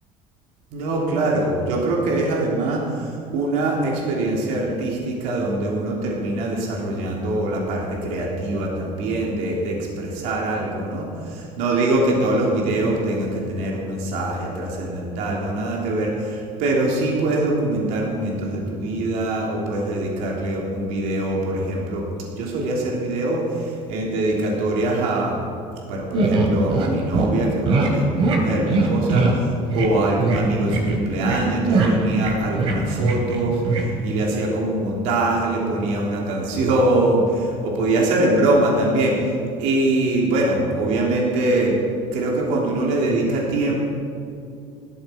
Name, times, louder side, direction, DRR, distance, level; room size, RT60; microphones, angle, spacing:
voice 1, 0.7-22.0 22.3-25.4 25.9-39.3 39.6-41.7 42.1-43.7, right 2 dB, 75° right, -2 dB, 3.3 m, -23 dB
sound 1, 26.1-26.9 27.1-27.3 27.7-27.9 28.2-28.4 28.7-29.4 29.7-29.9 30.2-30.4 30.7-31.4 31.7-33.4 33.6-33.9, right 3 dB, 50° right, 2.9 m, -20 dB
17.0 x 13.5 x 5.2 m, 2.4 s
cardioid pair, 165°, 12 cm